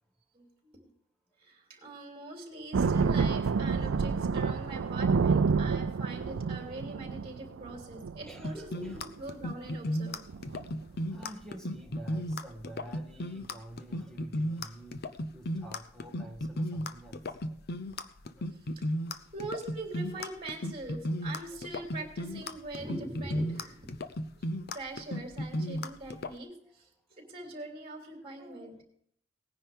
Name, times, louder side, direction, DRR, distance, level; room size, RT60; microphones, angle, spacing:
voice 1, 0.3-0.8 1.4-10.2 18.7-18.8 19.3-24.0 24.4-24.5 24.7-26.9 27.2-28.8, right 2 dB, 30° right, 1 dB, 3.1 m, -42 dB
sound 1, 2.7-8.5 8.8-9.0 9.4-9.7 10.0-10.1 10.3-11.0, right 5 dB, 70° right, 0.4 m, -29 dB
voice 2, 8.3-9.0 11.1-15.0 15.3-17.2 17.5-17.6 18.4-18.5 28.2-28.4, right 1 dB, 5° left, 2 dB, 1.8 m, -48 dB
sound 2, 8.4-26.3, left 1 dB, 55° left, 0.7 m, -34 dB
18.5 x 10.0 x 3.6 m, 0.66 s
head